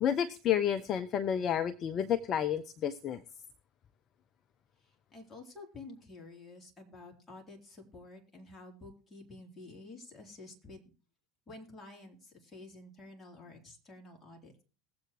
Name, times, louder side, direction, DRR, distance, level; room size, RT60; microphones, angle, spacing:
voice 1, 0.0-3.2, left 9 dB, 40° left, 11 dB, 0.6 m, -30 dB
voice 2, 4.8-10.9 11.5-14.6, left 2 dB, 20° left, 0 dB, 3.7 m, -50 dB
20.0 x 7.8 x 3.1 m, 0.36 s
figure-of-eight pair, 75°, 0 cm